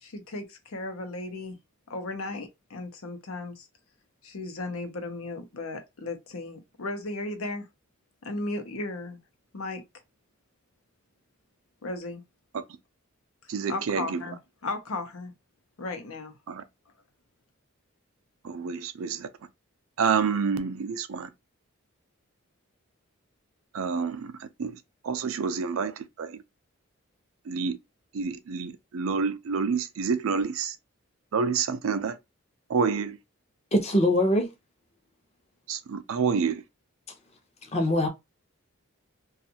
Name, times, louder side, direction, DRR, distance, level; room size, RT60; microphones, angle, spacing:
voice 1, 0.0-1.6 1.9-3.7 4.2-7.7 8.2-9.2 9.5-9.8 11.8-12.2 13.7-15.3 15.8-16.3, left 2 dB, 80° left, 0.7 m, -35 dB
voice 2, 13.5-14.2 16.5-16.6 18.4-19.3 20.0-21.3 23.7-24.3 24.6-24.7 25.0-25.9 26.2-26.3 27.5-27.7 28.1-30.7 31.3-32.2 32.7-33.2 35.7-36.6, right 5 dB, 75° right, 0.4 m, -28 dB
voice 3, 33.7-34.5 37.7-38.1, left 1 dB, 30° left, 0.7 m, -22 dB
2.5 x 2.4 x 2.7 m
head